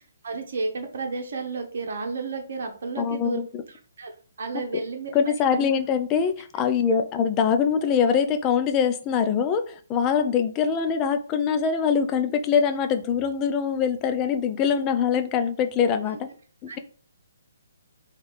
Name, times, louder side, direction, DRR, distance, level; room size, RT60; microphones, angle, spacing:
voice 1, 0.2-3.4 3.7-4.1 4.4-5.1 5.5-5.7 6.9-7.0 16.7-16.8, right 4 dB, 55° right, 3 dB, 0.9 m, -32 dB
voice 2, 3.0-3.6 4.5-4.6 5.1-16.2 16.6-16.8, left 7 dB, 20° left, 8 dB, 0.5 m, -23 dB
3.5 x 3.3 x 4.0 m, 0.41 s
figure-of-eight pair, 130°, 0 cm